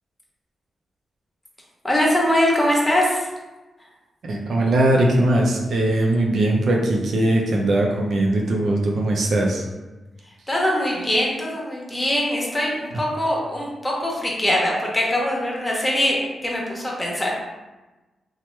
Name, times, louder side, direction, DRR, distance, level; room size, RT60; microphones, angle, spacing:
voice 1, 1.8-3.3 10.5-17.3, left 1 dB, 20° left, -3 dB, 1.0 m, -22 dB
voice 2, 4.2-9.6, right 1 dB, 70° right, 0 dB, 0.5 m, -20 dB
2.8 x 2.1 x 3.1 m, 1.1 s
supercardioid pair, 45°, 0 cm